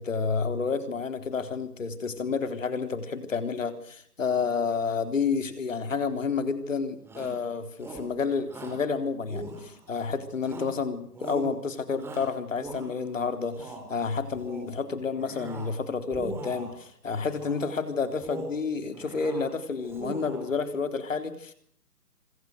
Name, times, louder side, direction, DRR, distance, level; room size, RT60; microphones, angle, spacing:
voice 1, 0.0-21.5, left 5 dB, 55° left, 9 dB, 3.9 m, -30 dB
Shout, 7.0-7.4 7.8-8.1 8.5-8.8 9.3-10.0 10.4-10.8 11.1-11.5 12.0-13.1 13.5-13.9 14.3-14.8 15.1-15.8 16.1-16.8 17.3-17.7 18.1-18.6 18.9-19.5 19.8-20.5, right 3 dB, 5° right, 3.8 m, -41 dB
26.5 x 24.0 x 6.5 m, 0.65 s
figure-of-eight pair, 150°, 46 cm